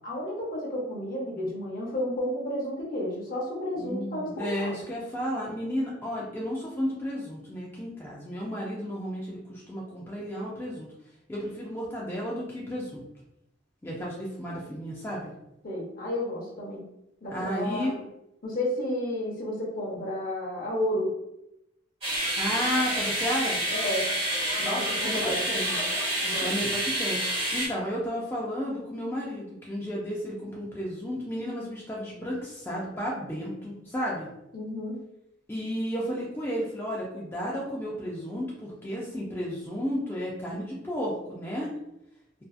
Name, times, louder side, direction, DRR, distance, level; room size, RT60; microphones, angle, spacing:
voice 1, 0.0-4.8 15.6-16.8 17.2-18.0 18.4-21.1 23.7-24.1 24.6-24.8 25.1-25.4 26.1-26.6 34.5-35.0, left 1 dB, 50° left, -3 dB, 0.8 m, -32 dB
voice 2, 3.8-10.9 11.3-13.0 13.8-15.3 17.3-17.9 22.4-23.6 24.6-25.8 26.4-27.2 27.5-34.3 35.5-41.7, equal, 10° left, -5 dB, 0.4 m, -33 dB
sound 1, 22.0-27.7, equal, 35° right, 1.4 m, -28 dB
2.6 x 2.3 x 2.3 m, 0.85 s
head